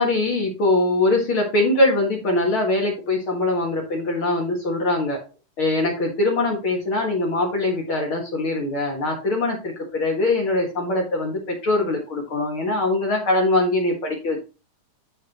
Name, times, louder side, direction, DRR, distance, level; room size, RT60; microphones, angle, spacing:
voice 1, 0.0-5.2 5.6-14.4, left 2 dB, 50° left, -1 dB, 1.6 m, -22 dB
9.5 x 6.3 x 3.0 m, 0.32 s
omnidirectional pair, 4.7 m